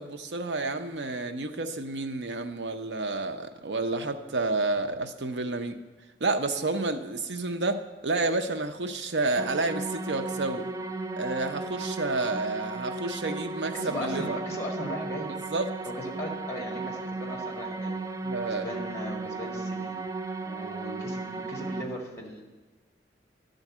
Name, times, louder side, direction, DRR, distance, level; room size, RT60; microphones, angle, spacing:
voice 1, 0.0-5.8 6.2-10.7 11.2-14.4 15.5-15.7 18.2-18.7, right 3 dB, 90° right, 7 dB, 0.7 m, -30 dB
sound 1, 9.4-21.8, right 3 dB, 15° right, 0.3 m, -35 dB
voice 2, 13.7-15.3 15.8-17.9 18.4-20.0 20.4-22.4, equal, 15° left, -1 dB, 1.8 m, -37 dB
11.5 x 3.9 x 7.3 m, 1.3 s
head